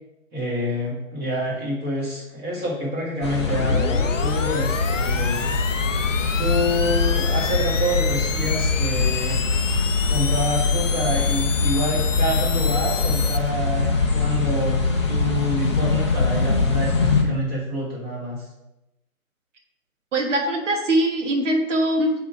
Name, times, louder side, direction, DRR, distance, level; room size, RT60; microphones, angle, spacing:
voice 1, 0.3-5.5 6.4-9.4 10.1-14.8 15.1-18.4, equal, 20° right, -4 dB, 1.6 m, -27 dB
sound 1, 3.2-17.2, left 3 dB, 20° left, 0.6 m, -22 dB
sound 2, 3.4-13.4, left 7 dB, 60° left, 0.6 m, -30 dB
voice 2, 20.1-22.1, right 1 dB, 55° right, 2 dB, 1.4 m, -22 dB
7.4 x 3.8 x 4.6 m, 0.94 s
figure-of-eight pair, 145°, 42 cm